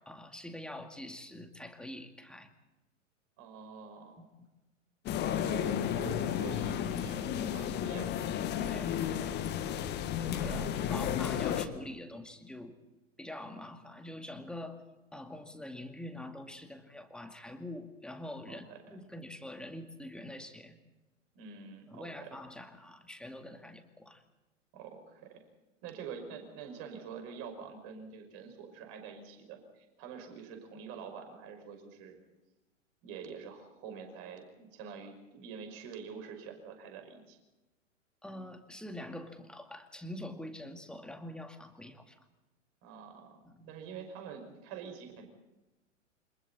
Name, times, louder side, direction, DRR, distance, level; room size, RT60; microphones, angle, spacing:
voice 1, 0.0-2.5 4.2-4.3 8.6-9.4 10.2-12.8 13.2-14.8 15.1-20.8 21.9-24.2 38.2-42.2 43.4-43.7, left 1 dB, ahead, 6 dB, 2.2 m, -45 dB
voice 2, 3.4-4.2 5.2-8.1 10.5-11.0 18.5-19.0 21.3-22.3 24.7-25.4 25.8-32.2 33.0-37.4 42.8-43.4 43.7-45.3, right 6 dB, 40° right, 5 dB, 5.8 m, -46 dB
sound 1, 5.1-11.7, left 9 dB, 25° left, 1.8 m, -33 dB
28.5 x 26.0 x 4.3 m, 1.1 s
figure-of-eight pair, 100°, 38 cm